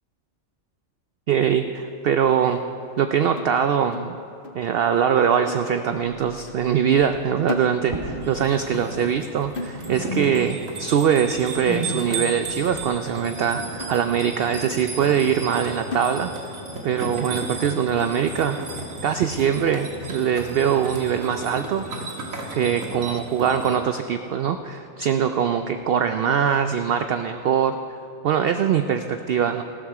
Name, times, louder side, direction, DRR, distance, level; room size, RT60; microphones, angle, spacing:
voice 1, 1.3-2.6 3.0-4.2 4.5-16.3 16.8-18.6 19.0-22.1 22.5-27.8 28.2-29.6, right 8 dB, 65° right, 8 dB, 0.6 m, -22 dB
sound 1, 3.4-4.7 4.9-5.2 5.5-6.2 6.5-6.7 7.0-8.2 8.5-8.7 9.1-10.2 10.6-10.8 11.1-11.3 11.6-12.2 12.7-12.8 13.2-13.4 13.8-14.5 14.9-15.0 15.4-15.6 15.9-16.6 17.0-17.1 17.5-17.6 18.0-18.5 19.0-19.1 19.5-19.7, left 2 dB, 50° left, 1.0 m, -38 dB
sound 2, 5.9-6.6 6.9-7.3 7.8-8.4 8.6-9.5 9.8-10.7 11.0-14.8, equal, 25° right, 1.6 m, -35 dB
sound 3, 8.2-23.8, right 3 dB, 85° right, 1.9 m, -35 dB
15.0 x 13.0 x 4.8 m, 2.8 s
omnidirectional pair, 1.4 m